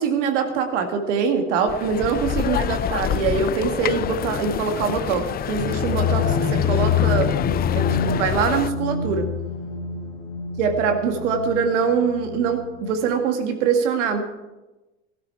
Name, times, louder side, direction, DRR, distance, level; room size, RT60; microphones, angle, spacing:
voice 1, 0.0-7.3 7.7-9.3 10.6-14.3, right 6 dB, 85° right, 5 dB, 2.0 m, -23 dB
sound 1, 1.7-8.7, left 11 dB, 30° left, 0.4 m, -26 dB
sound 2, 5.6-13.3, left 7 dB, 65° left, 2.2 m, -27 dB
16.0 x 12.5 x 4.6 m, 1.1 s
supercardioid pair, 90°, 35 cm